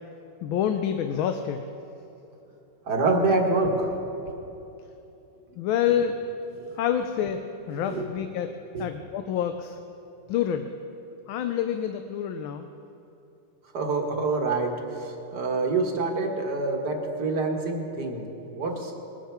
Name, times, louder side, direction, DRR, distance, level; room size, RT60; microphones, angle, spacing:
voice 1, 0.4-1.7 5.6-6.2 6.7-9.8 10.3-10.7 11.3-12.7, left 9 dB, 90° left, 7 dB, 1.4 m, -27 dB
voice 2, 2.9-4.3 7.8-8.1 8.7-8.9 13.7-14.7 15.0-18.2 18.5-18.9, right 3 dB, 60° right, 1 dB, 1.9 m, -26 dB
21.0 x 9.3 x 4.4 m, 3.0 s
omnidirectional pair, 2.2 m